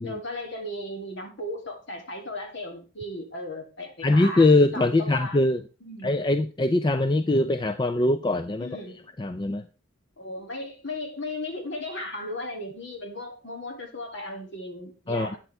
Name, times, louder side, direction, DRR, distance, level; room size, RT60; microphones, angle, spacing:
voice 1, 0.0-4.4 4.7-5.4 5.8-6.1 8.6-9.1 10.2-15.4, left 1 dB, 55° left, 2 dB, 2.8 m, -36 dB
voice 2, 4.0-5.6 6.0-8.7 9.2-9.6 15.1-15.4, left 2 dB, 20° left, 10 dB, 0.4 m, -22 dB
12.0 x 9.1 x 3.5 m, 0.33 s
head